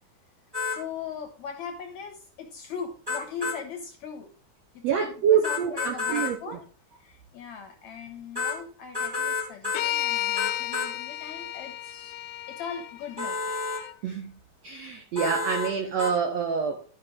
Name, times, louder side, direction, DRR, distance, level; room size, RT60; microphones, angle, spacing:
sound 1, 0.5-0.8 3.1-3.6 5.4-6.3 8.4-8.6 8.9-9.8 10.4-10.9 13.2-13.8 15.2-15.7 16.0-16.1, left 4 dB, 10° right, 1.1 m, -30 dB
voice 1, 0.7-4.3 4.7-6.6 7.0-12.2 12.5-13.6 14.0-14.3, left 6 dB, 70° left, 1.8 m, -39 dB
voice 2, 4.8-6.6 14.0-14.3 14.6-16.8, right 7 dB, 85° right, 1.5 m, -26 dB
sound 2, 9.7-13.9, left 13 dB, 90° left, 2.5 m, -33 dB
13.5 x 5.2 x 3.8 m
omnidirectional pair, 4.3 m